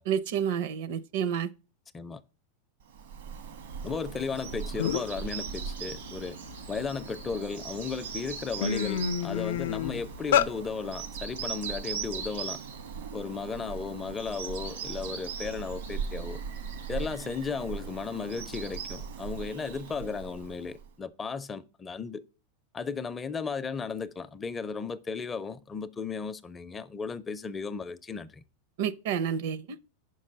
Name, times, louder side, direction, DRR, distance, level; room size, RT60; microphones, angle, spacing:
voice 1, 0.1-1.5 28.8-29.6, right 8 dB, 65° right, 0.6 m, -29 dB
Bird vocalization bird call bird song, 2.9-20.9, right 6 dB, 85° right, 1.3 m, -39 dB
voice 2, 3.8-6.4 6.7-12.6 13.1-16.4 16.9-22.2 22.7-28.4, left 5 dB, 15° left, 0.5 m, -35 dB
sound 1, 4.4-4.5 4.8-5.2 5.7-7.2 7.8-8.0 8.3-10.5, left 9 dB, 85° left, 0.5 m, -28 dB
5.5 x 5.4 x 6.5 m
supercardioid pair, 140°, 0 cm